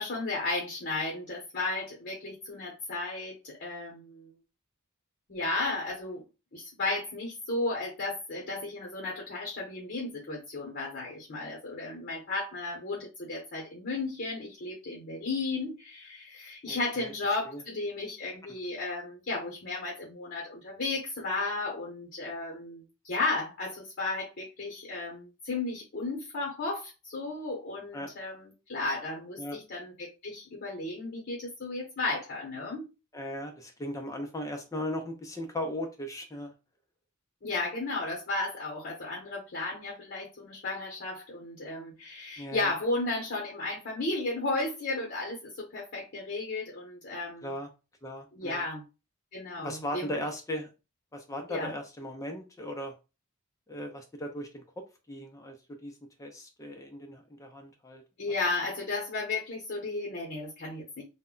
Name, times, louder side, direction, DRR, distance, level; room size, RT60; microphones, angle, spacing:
voice 1, 0.0-4.3 5.3-6.2 6.5-32.9 37.4-47.5 48.3-48.8 49.3-50.2 51.5-51.8 58.2-61.0, left 3 dB, 50° left, 0.8 m, -34 dB
voice 2, 16.7-17.1 17.4-17.6 27.9-28.1 29.4-29.6 33.1-36.5 42.4-42.7 47.4-47.7 48.0-48.6 49.6-50.7 51.1-52.9 53.7-54.6 55.1-55.6 55.8-55.9 56.2-58.0, left 1 dB, 15° left, 0.4 m, -37 dB
2.1 x 2.1 x 3.7 m
head